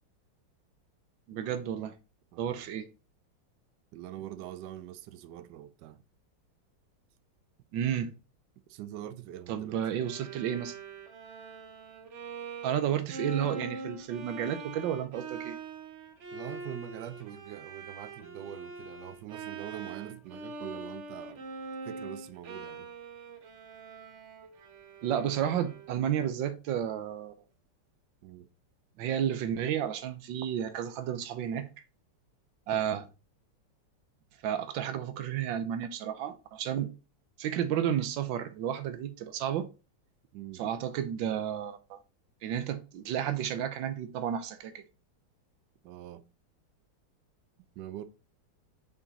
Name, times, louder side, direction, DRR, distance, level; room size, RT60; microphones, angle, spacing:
voice 1, 1.3-1.9 2.4-2.9 7.7-8.1 9.5-10.8 12.6-15.6 25.0-27.3 29.0-31.7 32.7-33.1 34.4-36.9 37.4-39.7 40.6-42.0 42.4-44.8, right 9 dB, 90° right, 1.4 m, -32 dB
voice 2, 2.3-2.7 3.9-6.0 8.7-9.8 16.3-21.4 21.9-22.9 28.2-28.5 40.3-40.6 45.8-46.2 47.8-48.0, right 11 dB, 75° right, 1.2 m, -43 dB
Bowed string instrument, 10.0-26.1, right 3 dB, 50° right, 1.0 m, -43 dB
5.5 x 4.9 x 4.0 m
omnidirectional pair, 2.0 m